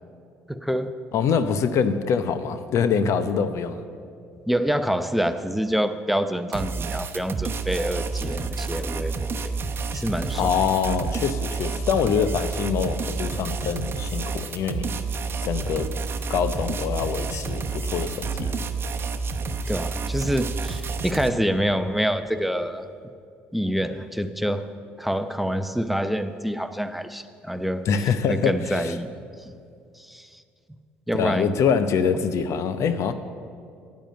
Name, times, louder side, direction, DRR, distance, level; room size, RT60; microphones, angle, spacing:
voice 1, 0.5-0.9 4.5-9.5 9.9-10.5 19.7-22.9 23.5-24.7 25.0-29.1 29.4-29.5 30.0-30.4 31.1-31.5, equal, ahead, 10 dB, 0.8 m, -26 dB
voice 2, 1.1-3.8 10.3-14.9 15.4-15.9 16.3-18.6 27.9-28.9 31.1-33.1, left 6 dB, 60° left, 11 dB, 0.7 m, -24 dB
sound 1, 6.5-21.3, right 4 dB, 45° right, 0.9 m, -29 dB
10.0 x 9.3 x 7.7 m, 2.3 s
hypercardioid pair, 60°, 5 cm